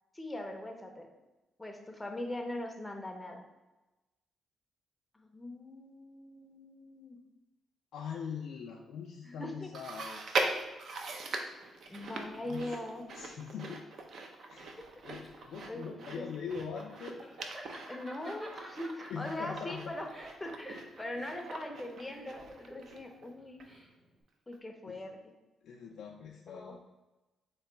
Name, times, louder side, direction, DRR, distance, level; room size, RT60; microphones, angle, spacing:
voice 1, 0.1-1.1 1.6-3.4 5.1-7.2 9.2-9.7 11.9-13.0 14.3-14.5 15.7-16.3 17.9-20.1 20.4-23.6 24.5-25.2 26.5-26.7, left 1 dB, 10° left, 4 dB, 0.6 m, -41 dB
voice 2, 7.9-10.3 12.4-12.8 13.2-13.9 14.5-14.8 15.0-17.2 19.1-19.9 24.9-25.1 25.6-26.8, left 6 dB, 85° left, 0 dB, 0.4 m, -42 dB
Chewing mastication, 9.7-23.3 23.6-23.7 24.5-24.6, right 3 dB, 55° right, 0.5 m, -41 dB
Laughter, 14.8-24.2, right 1 dB, 20° right, 0.9 m, -52 dB
3.9 x 2.9 x 4.4 m, 1.1 s
cardioid pair, 145°, 0 cm